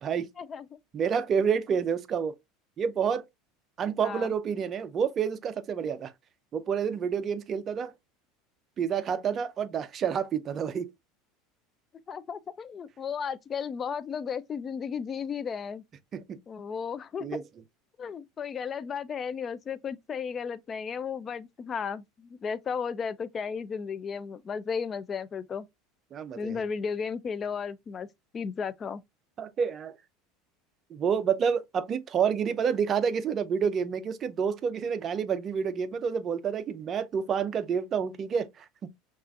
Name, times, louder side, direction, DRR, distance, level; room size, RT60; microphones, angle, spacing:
voice 1, 0.4-0.8 4.0-4.3 12.1-15.8 16.5-17.3 18.0-25.7 26.4-28.1 28.3-29.0, left 6 dB, 30° left, 0.4 m, -34 dB
voice 2, 0.9-2.3 2.8-3.2 3.8-6.1 6.5-7.9 8.8-10.9 16.1-16.4 17.2-17.4 26.1-26.6 29.4-29.9 30.9-38.9, right 7 dB, 35° right, 0.5 m, -29 dB
5.6 x 2.4 x 2.5 m
supercardioid pair, 120°, 0 cm